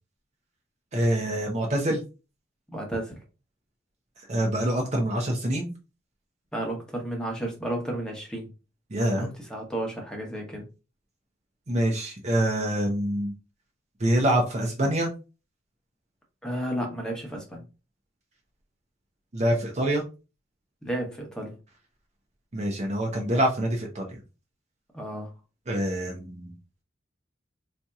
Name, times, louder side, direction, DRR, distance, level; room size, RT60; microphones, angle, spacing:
voice 1, 0.9-2.0 4.3-5.7 8.9-9.3 11.7-13.3 14.0-15.1 19.3-20.0 22.5-24.1 25.7-26.5, right 1 dB, 35° right, 1 dB, 0.6 m, -25 dB
voice 2, 2.7-3.2 6.5-8.5 9.2-10.6 16.4-17.6 20.8-21.6 24.9-25.3, right 1 dB, 5° left, 0 dB, 0.9 m, -32 dB
4.2 x 2.8 x 2.3 m, 0.31 s
head